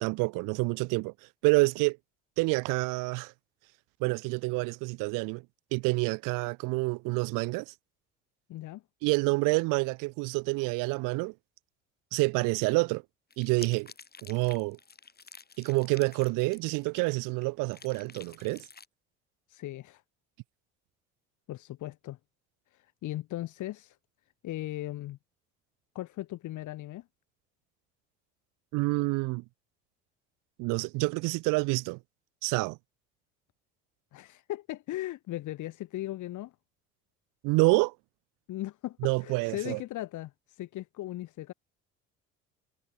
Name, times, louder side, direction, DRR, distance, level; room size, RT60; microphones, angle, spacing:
voice 1, 0.0-1.1 1.4-2.0 2.4-3.3 4.0-5.4 5.7-7.7 9.0-11.3 12.1-13.0 13.4-13.9 14.2-14.8 15.6-18.7 28.7-29.4 30.6-32.0 32.4-32.8 37.4-37.9 39.0-39.8, right 27 dB, 65° right, 0.7 m, -28 dB
voice 2, 8.5-8.8 19.5-20.0 21.5-22.2 22.7-24.0 24.4-25.2 25.9-27.1 34.1-36.5 38.5-41.5, left 15 dB, 60° left, 2.1 m, -38 dB
sound 1, 13.3-17.4 17.7-18.9, left 5 dB, 25° left, 7.9 m, -50 dB
hypercardioid pair, 70°, 34 cm